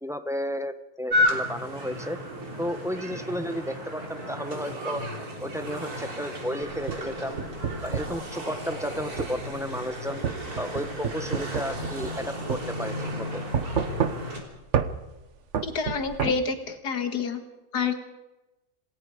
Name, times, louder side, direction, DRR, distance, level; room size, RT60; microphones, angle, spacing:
voice 1, 0.0-2.2 2.6-5.0 5.4-7.4 7.8-10.2 10.6-13.3, equal, 5° right, 9 dB, 0.7 m, -33 dB
sound 1, 1.1-14.4, left 1 dB, 70° right, 4.1 m, -33 dB
sound 2, 6.7-8.2 9.2-9.4 10.2-12.2 12.5-12.6 13.5-14.4 14.7-14.9 15.5-16.3, right 7 dB, 50° right, 1.3 m, -28 dB
voice 2, 15.6-17.4 17.7-17.9, left 5 dB, 90° left, 7 dB, 2.5 m, -28 dB
27.5 x 19.0 x 5.0 m, 1.0 s
omnidirectional pair, 1.7 m